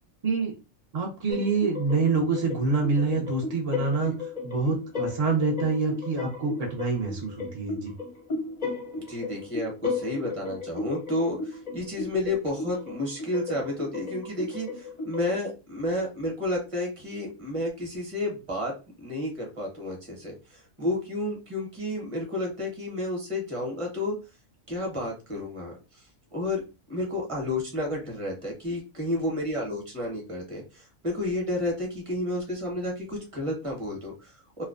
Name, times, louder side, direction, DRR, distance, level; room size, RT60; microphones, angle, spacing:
voice 1, 0.9-4.1 4.4-7.9, right 4 dB, 75° right, -1 dB, 0.3 m, -26 dB
sound 1, 1.3-15.3, left 4 dB, 45° left, 0.5 m, -35 dB
voice 2, 9.0-18.7 19.0-24.2 24.7-26.1 26.3-26.6 26.9-34.6, left 1 dB, 30° right, -1 dB, 0.8 m, -31 dB
2.4 x 2.1 x 2.3 m, 0.30 s
omnidirectional pair, 1.4 m